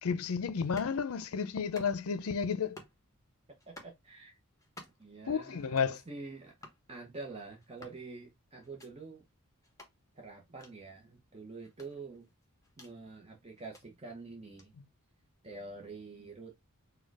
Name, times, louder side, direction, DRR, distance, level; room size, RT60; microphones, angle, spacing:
voice 1, 0.0-2.8 5.3-6.0, left 6 dB, 75° left, 0.5 m, -32 dB
sound 1, 0.6-1.0 1.6-2.2 2.6-3.0 3.6-4.0 4.6-5.1 5.6-5.9 6.6-6.8 7.6-8.0 8.6-8.9 9.6-9.9 10.6-10.7 11.6-12.9 13.6-13.8 14.6-14.7, left 1 dB, 15° left, 1.1 m, -53 dB
voice 2, 3.5-4.3 5.0-6.5 6.9-9.2 10.2-12.3 12.8-14.7 15.4-16.6, right 3 dB, 30° right, 0.8 m, -47 dB
4.3 x 2.2 x 4.6 m
head